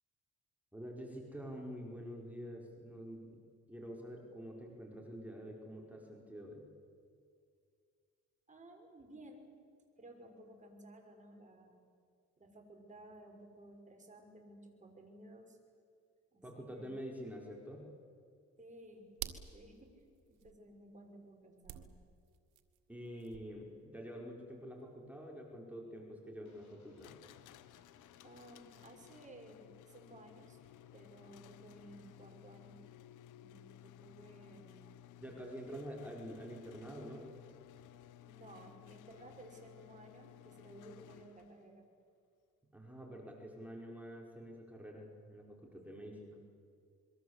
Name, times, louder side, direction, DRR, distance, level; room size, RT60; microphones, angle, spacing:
voice 1, 0.7-3.4 3.7-6.7 16.4-17.9 22.9-27.2 35.2-37.3 42.7-46.4, equal, 5° right, -1 dB, 5.0 m, -47 dB
voice 2, 8.5-9.5 10.0-11.8 12.4-15.6 16.3-16.9 18.6-19.1 19.5-21.9 28.2-30.6 30.9-32.8 33.3-35.3 38.3-41.8, right 1 dB, 25° right, 2 dB, 6.3 m, -56 dB
sound 1, 18.6-20.7 21.6-23.8, right 12 dB, 90° right, 1.7 m, -48 dB
sound 2, 26.5-29.3, left 4 dB, 70° left, 6.5 m, -69 dB
sound 3, 27.0-41.7, left 12 dB, 90° left, 0.9 m, -57 dB
26.5 x 23.0 x 8.2 m, 2.2 s
cardioid pair, 90°, 30 cm